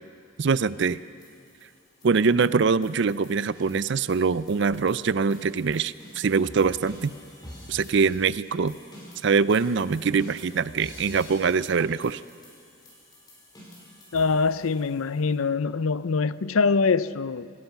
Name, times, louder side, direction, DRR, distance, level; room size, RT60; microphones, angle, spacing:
voice 1, 0.4-1.0 2.0-7.1 7.7-8.8 9.2-12.2, right 5 dB, 55° right, 0.4 m, -23 dB
sound 1, 0.8-15.4, left 1 dB, 20° left, 4.6 m, -49 dB
voice 2, 14.1-17.5, left 4 dB, 75° left, 0.6 m, -24 dB
27.0 x 17.0 x 6.0 m
head